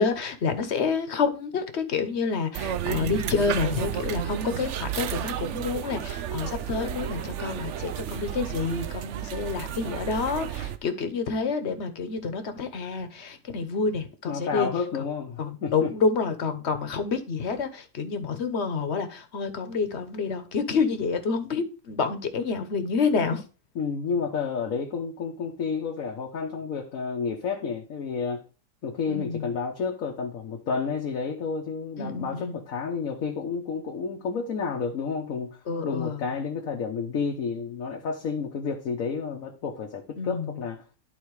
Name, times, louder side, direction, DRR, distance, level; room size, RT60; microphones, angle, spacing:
voice 1, 0.0-14.7 15.4-23.4 29.1-29.5 32.0-32.5 35.7-36.2 40.2-40.5, left 5 dB, 55° left, 1.3 m, -28 dB
sound 1, 2.5-10.8, right 10 dB, 70° right, 0.9 m, -32 dB
voice 2, 14.3-15.9 23.7-28.4 28.8-35.6 35.8-40.8, left 5 dB, 90° left, 1.5 m, -30 dB
11.5 x 4.1 x 4.7 m
omnidirectional pair, 1.4 m